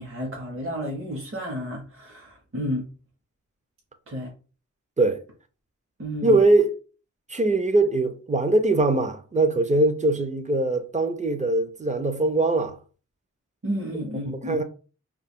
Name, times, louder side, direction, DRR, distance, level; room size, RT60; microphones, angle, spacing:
voice 1, 0.0-2.9 4.1-4.3 6.0-6.4 13.6-14.6, equal, 45° right, 0.8 m, -31 dB
voice 2, 6.2-6.7 7.3-12.7 14.3-14.6, right 2 dB, 25° right, 0.4 m, -22 dB
2.3 x 2.1 x 3.5 m
wide cardioid pair, 65°, 31 cm